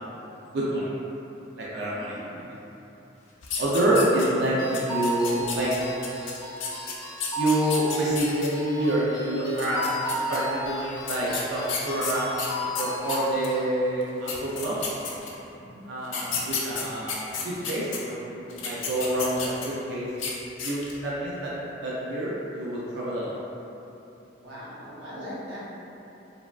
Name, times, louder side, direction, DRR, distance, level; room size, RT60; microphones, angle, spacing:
voice 1, 0.5-0.9 1.6-2.1 3.6-5.7 7.3-12.3 12.8-14.8 15.9-20.1 20.6-23.4, right 1 dB, 65° right, -7 dB, 0.4 m, -27 dB
voice 2, 1.9-2.5 15.6-15.9 24.4-25.6, equal, 90° right, -9 dB, 0.9 m, -41 dB
sound 1, 3.4-4.4 4.7-8.5 9.5-10.4 11.1-13.5 14.0-14.1 14.3-15.5 16.0-18.0 18.5-19.8 20.1-20.3 20.6-21.0, left 5 dB, 90° left, 0.5 m, -32 dB
sound 2, 4.6-13.7, equal, 25° left, 0.4 m, -34 dB
3.3 x 2.3 x 2.3 m, 3.0 s
head